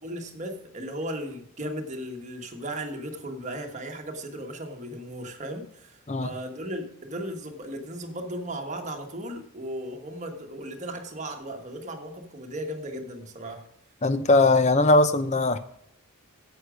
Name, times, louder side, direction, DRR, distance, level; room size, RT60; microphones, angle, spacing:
voice 1, 0.0-13.7, right 1 dB, 35° right, 1.4 m, -36 dB
voice 2, 14.0-15.6, left 2 dB, 30° left, 0.7 m, -20 dB
10.0 x 8.1 x 5.1 m
head